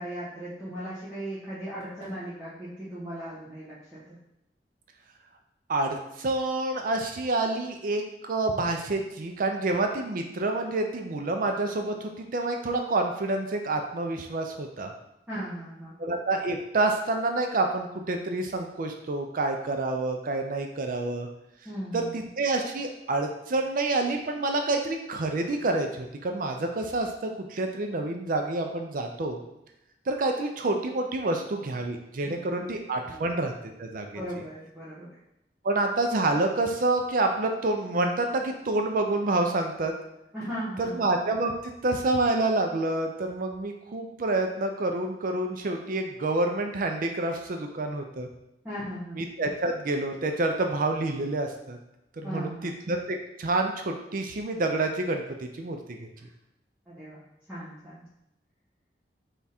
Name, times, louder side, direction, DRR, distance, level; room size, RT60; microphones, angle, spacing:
voice 1, 0.0-4.2 15.3-16.0 21.6-22.3 32.2-32.3 32.6-32.7 33.1-33.3 34.1-35.1 40.3-41.0 48.6-49.2 52.2-52.8 56.2-56.3 56.9-58.0, equal, 10° right, -12 dB, 1.3 m, -37 dB
voice 2, 5.7-14.9 16.0-21.3 21.9-29.4 30.1-33.5 33.8-34.2 35.6-39.9 41.0-48.3 49.1-51.8 52.2-52.5 52.9-55.2 55.6-56.1, right 2 dB, 50° right, 4 dB, 0.5 m, -28 dB
3.6 x 3.5 x 4.2 m, 0.88 s
head